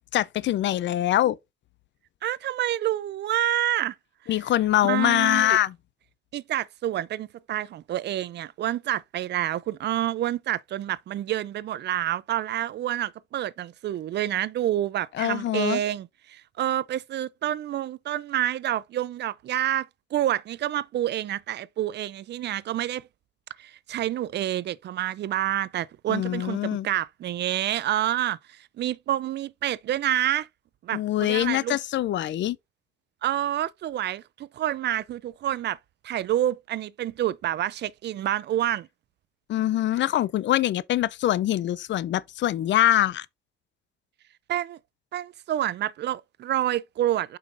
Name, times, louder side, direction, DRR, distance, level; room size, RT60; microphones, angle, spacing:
voice 1, 0.1-1.4 4.3-5.7 15.1-15.8 26.1-26.9 30.9-32.6 39.5-43.3, left 13 dB, 65° left, 0.5 m, -24 dB
voice 2, 2.2-3.9 4.8-5.6 6.3-23.0 23.6-30.5 30.8-31.8 33.2-35.8 36.0-38.9 44.5-44.8 45.1-47.4, right 12 dB, 60° right, 0.4 m, -28 dB
7.2 x 5.4 x 2.5 m
cardioid pair, 90°, 20 cm